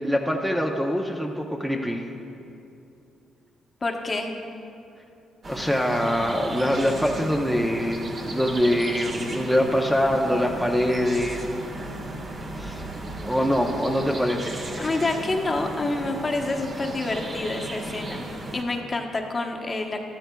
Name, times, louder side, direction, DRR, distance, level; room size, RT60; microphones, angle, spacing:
voice 1, 0.0-2.1 5.5-11.4 12.6-12.8 13.2-14.6, equal, 5° right, 1 dB, 0.7 m, -24 dB
voice 2, 3.8-4.3 14.8-18.2 18.5-20.0, left 2 dB, 30° left, 2 dB, 1.0 m, -27 dB
sound 1, 5.4-18.6, right 1 dB, 50° right, 1.5 m, -35 dB
12.5 x 12.5 x 2.3 m, 2.7 s
cardioid pair, 90°, 0 cm